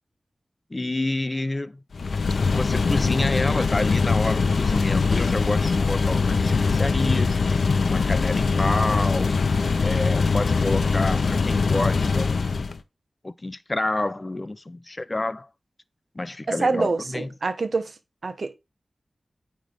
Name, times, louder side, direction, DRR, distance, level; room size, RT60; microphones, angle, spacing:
voice 1, 0.7-1.8 2.5-7.4 7.8-9.4 9.8-12.7 13.2-15.5 16.1-17.3, left 2 dB, 30° left, 0.6 m, -29 dB
sound 1, 1.9-12.8, left 4 dB, 80° left, 0.7 m, -22 dB
voice 2, 16.5-17.9 18.2-18.5, right 3 dB, 65° right, 1.0 m, -25 dB
9.0 x 3.3 x 5.0 m
wide cardioid pair, 70°, 0 cm